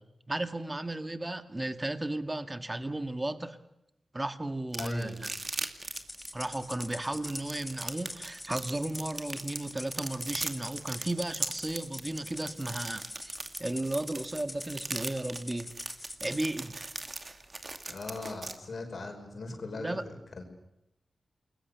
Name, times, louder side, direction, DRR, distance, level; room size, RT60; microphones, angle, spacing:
voice 1, 0.3-3.6 4.1-5.1 6.3-13.3 13.6-15.7 16.2-16.9 19.8-20.0, right 1 dB, 20° right, 9 dB, 1.9 m, -34 dB
sound 1, 4.7-18.5, right 2 dB, 35° right, 2.4 m, -39 dB
voice 2, 4.8-5.2 17.9-20.4, left 2 dB, 65° left, 4 dB, 5.5 m, -39 dB
Rattle (instrument), 5.9-16.4, left 1 dB, 25° left, 6.1 m, -44 dB
28.5 x 21.5 x 6.9 m, 0.85 s
cardioid pair, 65°, 0 cm